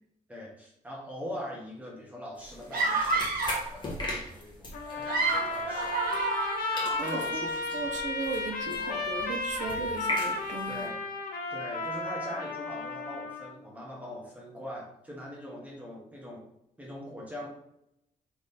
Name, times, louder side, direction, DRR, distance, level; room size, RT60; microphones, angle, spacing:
voice 1, 0.3-6.0 6.8-7.5 10.7-11.0 11.5-16.4 16.8-17.5, left 1 dB, 10° right, -4 dB, 1.1 m, -42 dB
sound 1, 2.4-6.5 6.8-10.9, left 1 dB, 30° left, 1.4 m, -39 dB
sound 2, 2.7-3.7 4.9-7.3, right 3 dB, 80° right, 1.4 m, -29 dB
Trumpet, 4.7-13.5, left 3 dB, 85° left, 0.9 m, -34 dB
voice 2, 6.9-7.5 7.7-10.9, right 4 dB, 55° right, 3 dB, 0.6 m, -36 dB
3.5 x 3.0 x 4.2 m, 0.79 s
cardioid pair, 130°, 15 cm